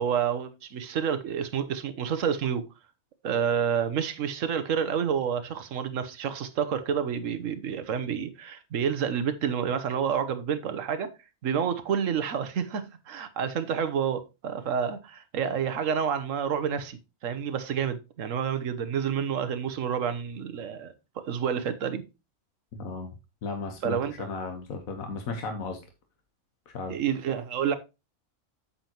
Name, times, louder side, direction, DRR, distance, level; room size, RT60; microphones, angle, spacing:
voice 1, 0.0-2.7 3.2-11.1 11.4-22.0 23.8-24.1 26.9-27.8, right 7 dB, 70° right, 1.3 m, -29 dB
voice 2, 22.7-23.1 23.4-25.8 26.7-27.0, left 3 dB, 80° left, 1.6 m, -35 dB
8.5 x 7.2 x 2.9 m
omnidirectional pair, 1.4 m